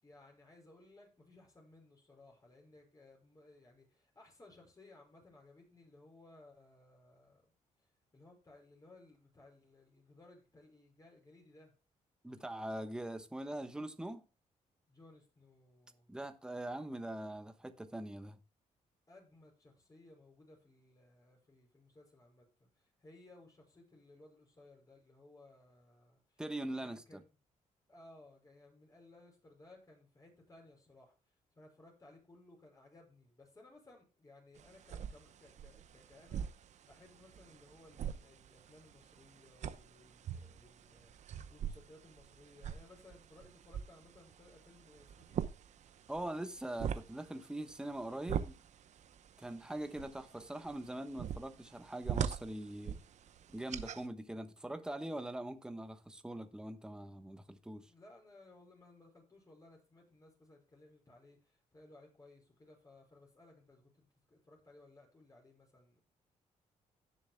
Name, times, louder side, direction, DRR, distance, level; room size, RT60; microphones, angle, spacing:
voice 1, 0.0-7.5 7.8-11.7 14.9-16.1 19.1-26.4 26.8-27.2 27.9-45.5 57.9-66.0, left 2 dB, 25° left, 5.6 m, -61 dB
voice 2, 12.2-14.2 16.1-18.4 26.4-27.2 46.1-48.6 49.4-53.0 53.5-57.9, right 1 dB, 5° right, 1.1 m, -42 dB
sound 1, 34.6-54.1, right 8 dB, 65° right, 0.8 m, -44 dB
17.0 x 7.1 x 2.2 m
cardioid pair, 100°, 13 cm